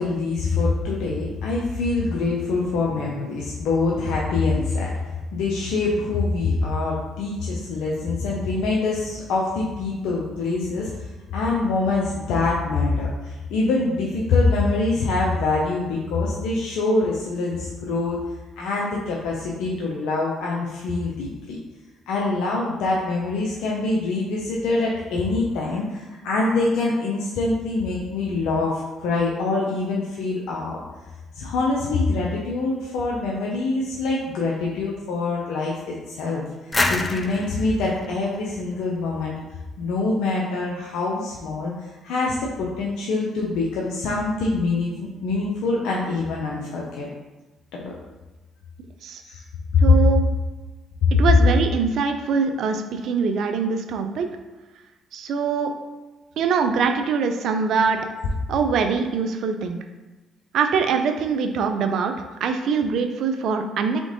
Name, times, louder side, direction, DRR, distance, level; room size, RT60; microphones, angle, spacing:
voice 1, 0.0-4.9 5.3-18.2 18.6-21.6 22.1-30.8 31.3-35.7 36.1-36.4 36.9-39.3 39.8-47.1 47.7-47.9 49.2-49.4 49.7-49.8 51.1-51.2, left 3 dB, 80° left, -3 dB, 0.7 m, -24 dB
sound 1, 36.7-39.4, left 2 dB, 25° left, 0.5 m, -28 dB
voice 2, 49.8-50.3 51.2-54.3 55.1-55.7 56.4-58.0 58.5-59.8 60.5-62.1 62.4-64.0, right 5 dB, 70° right, 7 dB, 0.5 m, -23 dB
3.8 x 3.6 x 3.7 m, 1.2 s
supercardioid pair, 65°, 0 cm